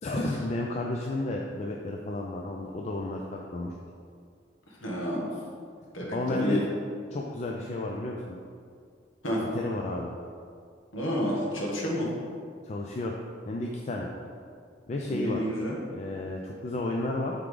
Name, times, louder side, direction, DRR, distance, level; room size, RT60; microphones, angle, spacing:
voice 1, 0.0-3.7 6.1-6.6 7.1-8.4 9.4-10.1 12.6-13.2 13.5-14.1 14.9-15.4 15.9-17.3, left 2 dB, 35° left, 0 dB, 0.4 m, -32 dB
voice 2, 4.8-5.3 5.9-6.6 9.2-9.4 10.9-12.1 15.1-15.8, equal, 90° left, -3 dB, 1.5 m, -29 dB
8.0 x 3.7 x 3.8 m, 2.2 s
head